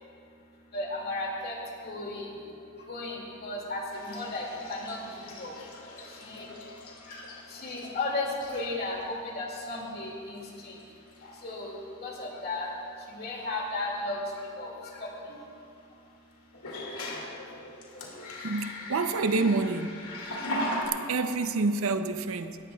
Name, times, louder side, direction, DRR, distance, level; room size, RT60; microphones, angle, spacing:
voice 1, 0.7-1.6 1.8-2.3 2.9-5.0 5.4-5.5 6.2-6.5 7.0-7.2 7.5-10.7 11.4-11.8 12.0-12.7 13.1-14.7 15.0-15.4, left 2 dB, 45° left, -1 dB, 2.3 m, -34 dB
sound 1, 3.9-8.0 8.4-8.8 9.8-9.9 10.4-10.8 11.1-11.4 13.4-13.5 16.5-20.9, left 1 dB, 75° left, 2.2 m, -39 dB
voice 2, 18.4-19.9 21.0-22.6, right 3 dB, 70° right, 10 dB, 0.6 m, -28 dB
19.0 x 14.5 x 2.3 m, 2.5 s
head